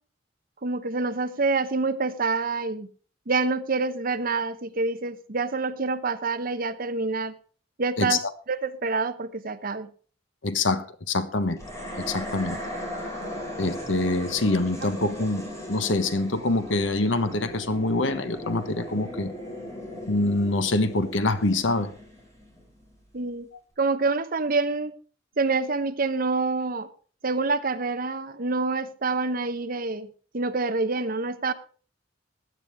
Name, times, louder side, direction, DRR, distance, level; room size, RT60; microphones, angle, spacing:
voice 1, 0.6-2.9 3.3-7.3 7.8-8.2 8.5-9.9 14.8-15.1 23.1-23.5 23.8-24.9 25.4-26.9 27.2-30.1 30.3-31.5, right 3 dB, 50° right, 1.0 m, -27 dB
voice 2, 10.4-11.6 12.0-12.6 13.6-19.3 20.1-21.9, left 2 dB, 75° left, 1.2 m, -25 dB
sound 1, 11.6-22.9, left 1 dB, 15° left, 5.7 m, -37 dB
16.0 x 11.5 x 3.5 m
head